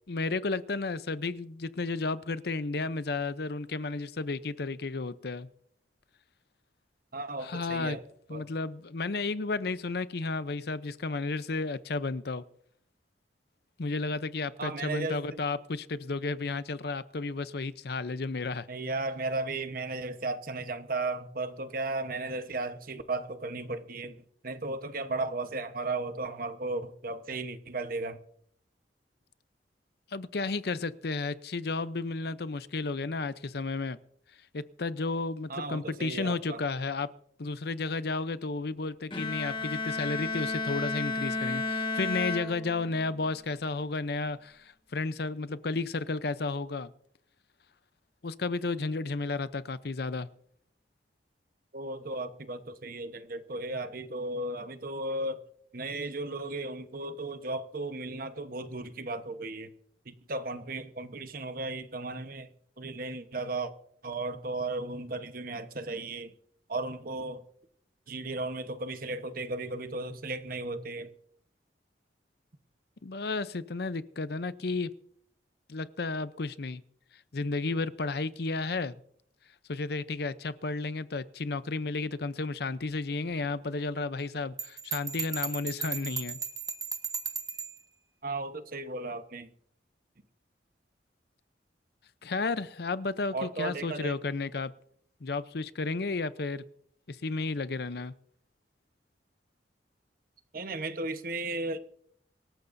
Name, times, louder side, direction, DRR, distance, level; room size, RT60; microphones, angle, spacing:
voice 1, 0.1-5.5 7.4-8.0 8.3-12.4 13.8-18.7 30.1-34.0 34.5-37.1 37.4-46.9 48.2-50.3 73.0-74.9 75.7-76.8 77.3-79.0 79.7-86.4 92.2-94.7 95.2-96.6 97.1-98.1, left 3 dB, 60° left, 0.7 m, -32 dB
voice 2, 7.1-8.0 8.3-8.5 14.6-15.4 18.7-24.1 24.4-28.2 35.5-36.6 51.7-55.4 55.7-59.7 60.1-62.5 62.8-63.7 64.0-66.3 66.7-67.4 68.1-71.1 88.2-89.5 93.3-94.2 100.5-101.8, right 2 dB, 55° right, 1.1 m, -35 dB
Bowed string instrument, 39.1-43.1, left 3 dB, 30° left, 1.6 m, -32 dB
Bell, 84.6-87.8, right 5 dB, 20° right, 1.3 m, -36 dB
25.0 x 14.0 x 2.7 m
head